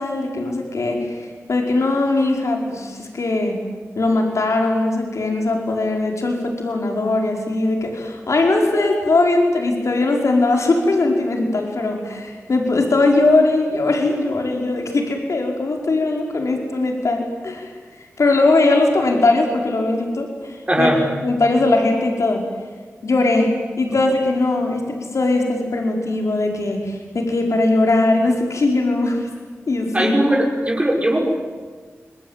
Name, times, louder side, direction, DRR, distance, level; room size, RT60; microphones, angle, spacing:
voice 1, 0.0-3.6 3.9-17.7 18.0-20.9 21.2-22.4 23.0-29.3 29.7-30.1, left 2 dB, 75° left, 2 dB, 5.1 m, -20 dB
voice 2, 20.7-21.0 29.9-31.3, right 1 dB, 25° right, -1 dB, 6.0 m, -18 dB
27.0 x 21.0 x 9.3 m, 1.5 s
cardioid pair, 45°, 5 cm